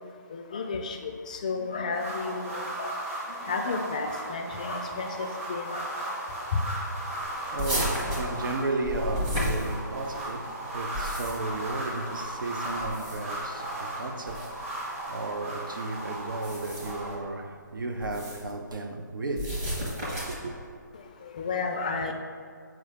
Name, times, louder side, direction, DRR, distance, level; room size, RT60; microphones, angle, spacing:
voice 1, 0.3-2.9 3.4-5.9 21.2-22.1, left 4 dB, 25° left, 0.3 m, -32 dB
sound 1, 1.9-17.2, right 1 dB, 40° right, 1.4 m, -36 dB
voice 2, 7.1-19.6 20.1-20.5, right 2 dB, 85° right, 0.7 m, -34 dB
sound 2, 7.6-10.2 10.8-11.6 12.8-13.4 14.3-14.5 16.3-17.1 18.0-18.5 19.3-20.5, equal, 20° right, 0.9 m, -32 dB
7.5 x 4.9 x 3.4 m
hypercardioid pair, 170°, 11 cm